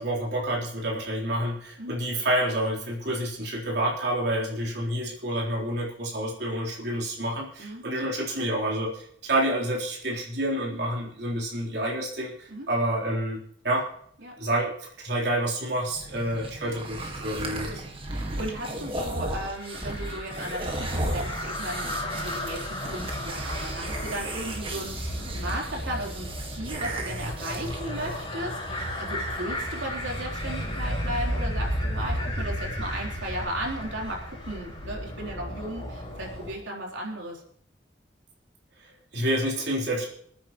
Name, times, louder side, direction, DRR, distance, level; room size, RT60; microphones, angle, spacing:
voice 1, 0.0-13.9 14.4-17.8 38.8-40.0, right 1 dB, 60° right, -3 dB, 3.8 m, -28 dB
sound 1, 15.9-28.3, right 1 dB, 30° right, 1.8 m, -35 dB
voice 2, 17.4-37.4, right 1 dB, 80° right, -2 dB, 3.9 m, -36 dB
sound 2, 19.5-36.5, equal, 30° left, 5.4 m, -33 dB
27.0 x 9.3 x 3.1 m, 0.66 s
head